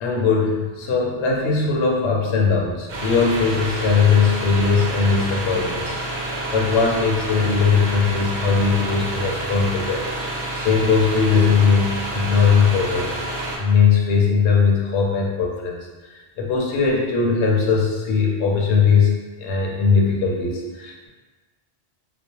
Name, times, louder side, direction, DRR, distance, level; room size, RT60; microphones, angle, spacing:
voice 1, 0.0-5.9 6.5-10.0 10.5-13.1 13.6-15.8 16.4-19.1 19.4-21.1, left 5 dB, 75° left, -1 dB, 0.8 m, -19 dB
sound 1, 2.9-13.6, right 1 dB, 90° right, 0.9 m, -28 dB
2.4 x 2.1 x 2.8 m, 1.3 s
omnidirectional pair, 1.2 m